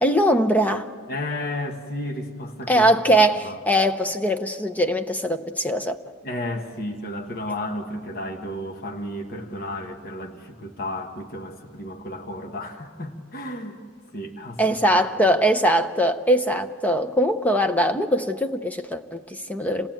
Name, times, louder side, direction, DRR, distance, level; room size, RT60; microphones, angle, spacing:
voice 1, 0.0-0.9 2.7-6.0 14.6-19.9, equal, 5° left, 8 dB, 0.6 m, -21 dB
voice 2, 1.1-2.9 3.4-3.6 6.2-13.8 14.1-14.6, left 1 dB, 45° left, 3 dB, 1.6 m, -32 dB
27.5 x 17.5 x 9.1 m, 2.1 s
head